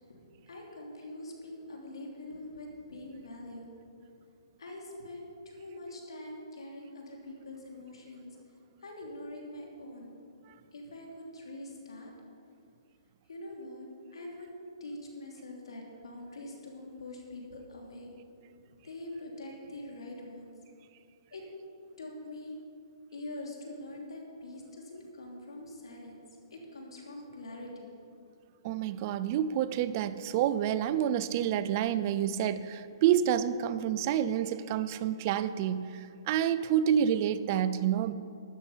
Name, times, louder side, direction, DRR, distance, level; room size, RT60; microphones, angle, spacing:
voice 1, 0.1-3.7 4.6-8.3 8.8-10.1 10.7-12.1 13.3-13.9 14.1-14.5 14.8-18.2 18.8-20.5 21.3-21.4 22.0-22.6 23.1-26.2 26.5-27.9, left 1 dB, 85° left, 0 dB, 3.1 m, -44 dB
voice 2, 28.6-38.1, right 10 dB, 35° right, 14 dB, 0.4 m, -28 dB
12.5 x 9.7 x 5.6 m, 2.6 s
hypercardioid pair, 150°, 3 cm